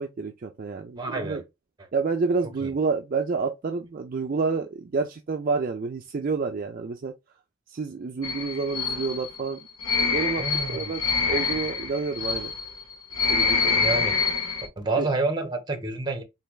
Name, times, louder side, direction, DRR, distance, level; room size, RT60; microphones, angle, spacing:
voice 1, 0.0-1.4 1.9-7.1 7.7-9.6 10.0-12.5 13.3-13.9 15.0-15.1, right 4 dB, 40° right, 0.4 m, -29 dB
voice 2, 1.0-1.4 2.6-2.7 10.4-10.9 13.7-14.2 14.8-16.2, right 3 dB, 20° right, 0.9 m, -28 dB
Birds Mid, 8.2-14.7, left 5 dB, 80° left, 1.0 m, -26 dB
3.9 x 3.3 x 2.3 m
head